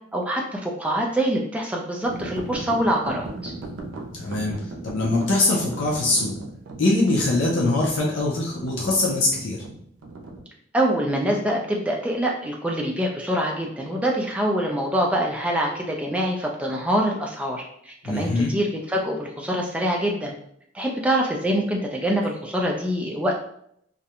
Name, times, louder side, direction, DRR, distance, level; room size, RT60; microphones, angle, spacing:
voice 1, 0.1-3.5 10.7-20.3 20.7-23.4, right 1 dB, 5° right, -1 dB, 0.3 m, -25 dB
sound 1, 2.0-10.4, right 2 dB, 75° right, 0.5 m, -37 dB
voice 2, 4.1-4.5 4.8-6.4 6.8-9.6 18.0-18.5, left 2 dB, 70° left, -3 dB, 0.5 m, -22 dB
2.4 x 2.1 x 2.8 m, 0.69 s
head